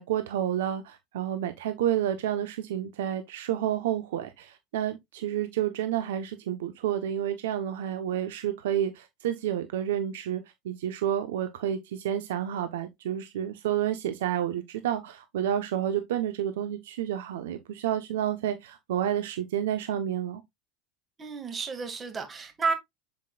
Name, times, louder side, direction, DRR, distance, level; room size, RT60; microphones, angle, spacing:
voice 1, 0.0-20.4, right 10 dB, 80° right, 1.1 m, -30 dB
voice 2, 21.2-22.7, right 4 dB, 25° right, 2.4 m, -31 dB
7.4 x 6.5 x 2.5 m
hypercardioid pair, 100°, 0 cm